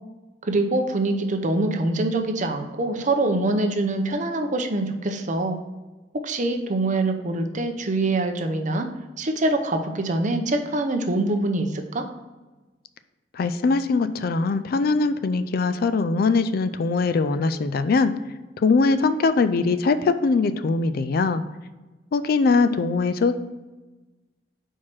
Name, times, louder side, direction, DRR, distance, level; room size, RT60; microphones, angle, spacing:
voice 1, 0.4-5.6 6.2-8.9 9.2-12.1, right 2 dB, 45° right, 5 dB, 0.7 m, -24 dB
voice 2, 13.3-18.1 18.6-21.4 22.1-23.4, left 4 dB, 55° left, 12 dB, 0.4 m, -21 dB
4.6 x 4.5 x 5.9 m, 1.2 s
head